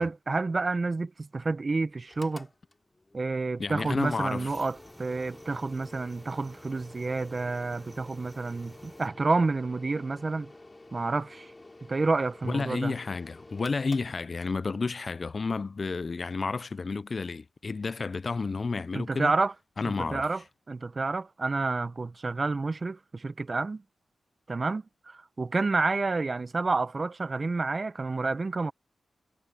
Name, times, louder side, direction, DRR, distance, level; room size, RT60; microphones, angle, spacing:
voice 1, 0.0-2.5 3.1-10.5 10.9-11.5 11.9-12.9 18.9-19.5 20.1-20.4 20.7-23.8 24.5-28.7, right 3 dB, 45° right, 1.2 m, -29 dB
Mechanical fan, 2.0-14.8, left 2 dB, 25° left, 6.8 m, -51 dB
voice 2, 3.6-4.5 12.4-19.3 19.8-20.3, left 4 dB, 50° left, 0.5 m, -31 dB
sound 1, 4.0-9.1, right 1 dB, 15° right, 5.5 m, -54 dB
cardioid pair, 50°, 0 cm